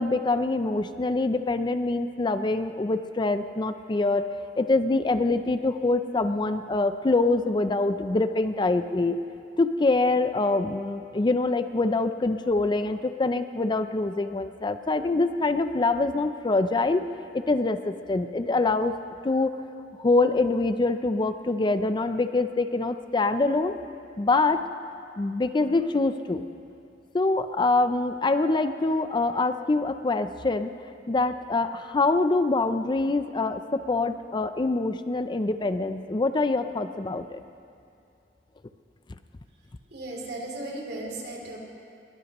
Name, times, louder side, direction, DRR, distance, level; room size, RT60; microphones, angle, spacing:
voice 1, 0.0-4.3 4.6-9.2 9.6-17.1 17.3-18.9 19.2-19.6 20.0-23.8 24.2-24.6 25.2-26.4 27.1-30.7 31.1-37.4, left 3 dB, 25° left, 10 dB, 0.4 m, -25 dB
voice 2, 39.9-41.6, right 2 dB, 65° right, -2 dB, 2.9 m, -36 dB
22.0 x 18.0 x 3.0 m, 2.6 s
head